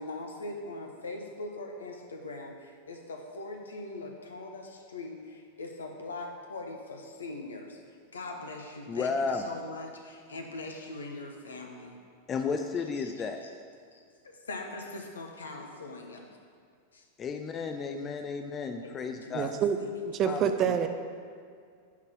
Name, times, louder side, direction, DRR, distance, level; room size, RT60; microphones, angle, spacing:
voice 1, 0.0-7.8 8.1-12.0 13.0-13.1 13.4-13.5 13.9-16.2 16.9-17.0 18.0-18.1 18.8-19.4 19.8-19.9, left 2 dB, 70° left, 3 dB, 1.0 m, -41 dB
voice 2, 8.9-9.5 12.3-13.4 17.2-19.5 20.2-20.8, left 5 dB, 25° left, 6 dB, 0.5 m, -33 dB
voice 3, 19.3-19.8 20.0-20.9, right 8 dB, 30° right, 7 dB, 0.6 m, -27 dB
10.5 x 4.1 x 6.1 m, 2.2 s
figure-of-eight pair, 90°, 0 cm